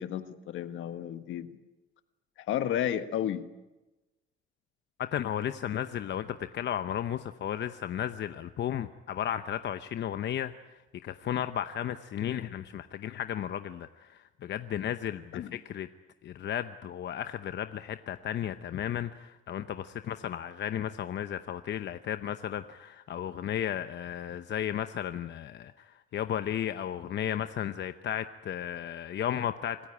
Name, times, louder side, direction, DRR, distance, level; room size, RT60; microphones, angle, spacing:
voice 1, 0.0-1.5 2.4-3.4 15.3-15.6, left 10 dB, 80° left, 10 dB, 1.5 m, -32 dB
voice 2, 5.0-15.9 16.2-29.9, left 10 dB, 65° left, 10 dB, 0.9 m, -34 dB
26.0 x 14.5 x 10.0 m, 1.1 s
cardioid pair, 90°, 20 cm